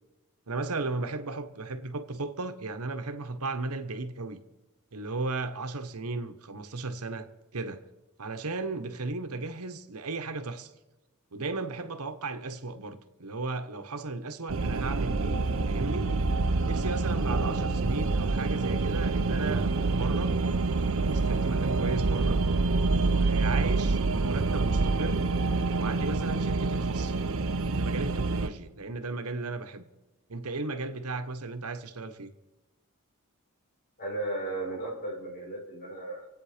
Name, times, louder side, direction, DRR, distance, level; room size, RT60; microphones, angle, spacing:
voice 1, 0.5-4.4 4.9-7.8 8.2-10.7 11.3-16.1 16.6-20.3 20.9-22.4 23.1-25.3 25.8-27.1 27.8-29.9 30.3-32.3, right 3 dB, 80° right, 1.1 m, -35 dB
sound 1, 14.5-28.5, right 3 dB, 60° right, 0.8 m, -27 dB
voice 2, 34.0-36.3, right 2 dB, 40° left, 5.2 m, -35 dB
26.5 x 9.0 x 5.0 m
head